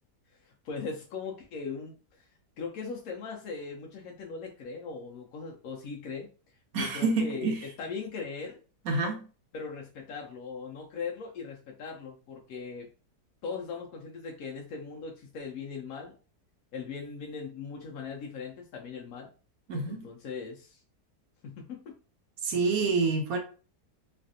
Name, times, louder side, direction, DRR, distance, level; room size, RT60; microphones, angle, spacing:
voice 1, 0.4-2.0 2.6-6.3 6.7-8.6 9.5-12.9 13.4-16.1 16.7-19.3 19.9-20.8 21.4-21.9, left 5 dB, 70° left, 0.9 m, -39 dB
voice 2, 6.7-7.6 8.8-9.2 19.7-20.1 22.4-23.4, right 3 dB, 65° right, 1.0 m, -27 dB
3.3 x 2.4 x 2.6 m
omnidirectional pair, 1.8 m